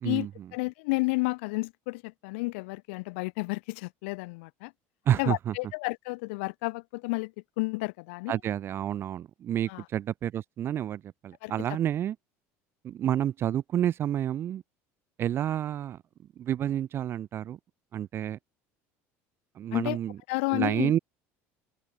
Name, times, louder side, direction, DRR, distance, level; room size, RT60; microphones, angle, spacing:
voice 1, 0.0-4.7 5.2-8.4 9.7-9.8 11.4-11.5 19.7-20.0 20.3-20.9, left 27 dB, 90° left, 0.4 m, -31 dB
voice 2, 5.1-5.5 8.3-12.2 12.8-14.6 15.2-16.0 16.4-17.6 17.9-18.4 19.6-20.2 20.5-21.0, right 11 dB, 40° right, 0.4 m, -29 dB
open air
cardioid pair, 125°, 6 cm